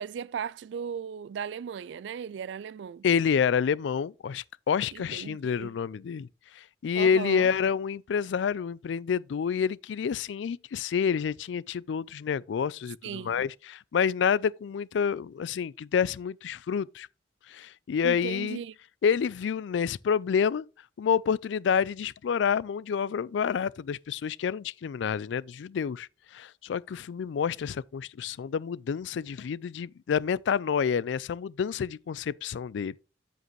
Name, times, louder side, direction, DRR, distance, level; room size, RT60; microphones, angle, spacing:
voice 1, 0.0-3.0 4.9-5.7 7.0-7.5 13.0-13.4 18.0-18.7, right 7 dB, 85° right, 0.3 m, -37 dB
voice 2, 3.0-6.3 6.6-17.1 17.5-18.6 19.0-20.7 21.0-26.1 26.3-33.0, left 7 dB, 85° left, 0.3 m, -28 dB
7.8 x 7.6 x 3.1 m
head